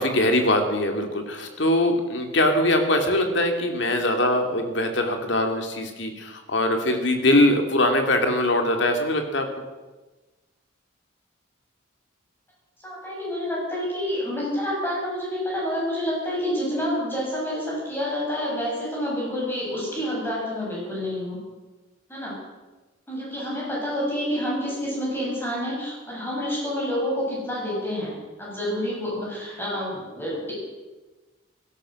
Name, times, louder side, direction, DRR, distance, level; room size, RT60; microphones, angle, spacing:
voice 1, 0.0-9.5, left 1 dB, 60° left, 5 dB, 2.5 m, -22 dB
voice 2, 12.8-21.4 22.1-22.4 23.1-28.1 28.4-30.5, equal, 10° left, -5 dB, 7.4 m, -28 dB
17.5 x 13.0 x 6.5 m, 1.2 s
head